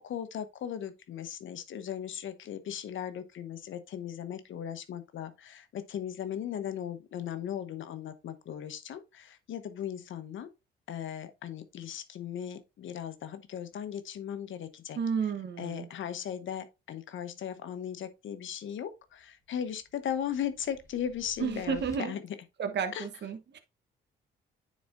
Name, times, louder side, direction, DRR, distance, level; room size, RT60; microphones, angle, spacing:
voice 1, 0.0-10.5 10.9-15.3 15.6-22.4 22.9-23.1, left 9 dB, 65° left, 1.0 m, -37 dB
voice 2, 15.0-15.9 21.4-22.1 22.6-23.6, right 6 dB, 55° right, 1.1 m, -32 dB
sound 1, 19.1-22.0, equal, 15° left, 2.0 m, -54 dB
9.4 x 4.3 x 2.6 m
supercardioid pair, 70°, 21 cm